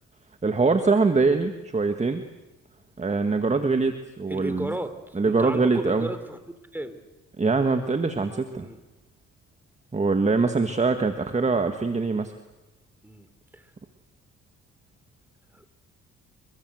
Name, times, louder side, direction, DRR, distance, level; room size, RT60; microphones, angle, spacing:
voice 1, 0.4-2.2 3.0-4.7 5.2-6.1 7.4-8.7 9.9-12.3, right 4 dB, 25° right, 7 dB, 1.8 m, -23 dB
voice 2, 4.3-6.4 6.7-7.0 7.6-7.8 8.5-8.8 13.0-13.3 13.5-13.7 15.5-15.7, right 1 dB, 5° right, 10 dB, 3.6 m, -34 dB
30.0 x 22.5 x 7.8 m, 1.0 s
cardioid pair, 90°, 30 cm